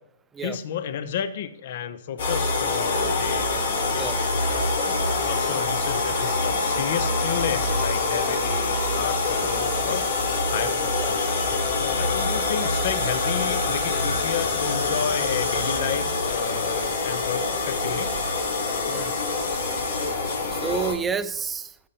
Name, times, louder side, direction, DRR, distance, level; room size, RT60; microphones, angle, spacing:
voice 1, 0.4-4.7 4.9-10.0 10.5-18.1, left 8 dB, 55° left, 12 dB, 0.6 m, -32 dB
sound 1, 2.2-20.9, left 3 dB, 70° left, 3.6 m, -25 dB
voice 2, 10.8-11.1 18.9-19.2 20.5-21.7, right 6 dB, 10° right, 12 dB, 0.4 m, -30 dB
14.0 x 5.5 x 2.8 m, 0.77 s
hypercardioid pair, 145°, 0 cm